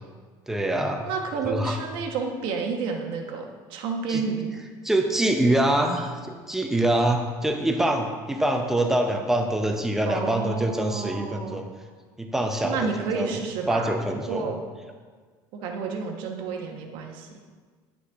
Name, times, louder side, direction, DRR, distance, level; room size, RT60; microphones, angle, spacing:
voice 1, 0.5-1.1 1.4-1.8 4.1-4.2 4.8-11.7 12.2-13.4 13.7-14.5, right 1 dB, 5° right, 4 dB, 0.7 m, -25 dB
voice 2, 1.0-3.4 3.7-4.5 10.1-11.6 12.6-14.0 14.3-14.6 15.5-17.3, right 5 dB, 65° right, 2 dB, 1.1 m, -30 dB
9.6 x 6.2 x 3.5 m, 1.5 s
cardioid pair, 160°, 9 cm